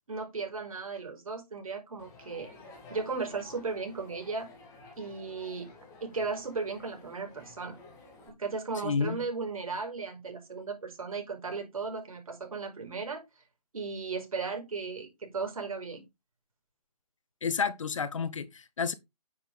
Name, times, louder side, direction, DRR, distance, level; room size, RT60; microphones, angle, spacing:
voice 1, 0.1-2.5 2.9-4.5 5.0-5.7 6.0-7.8 8.3-13.2 13.7-16.0, right 4 dB, 60° right, 5.1 m, -36 dB
Crowd, 2.0-8.3, left 3 dB, 15° left, 2.9 m, -52 dB
voice 2, 8.8-9.2 17.4-18.9, left 5 dB, 55° left, 1.1 m, -30 dB
10.0 x 7.3 x 3.6 m
figure-of-eight pair, 150°, 20 cm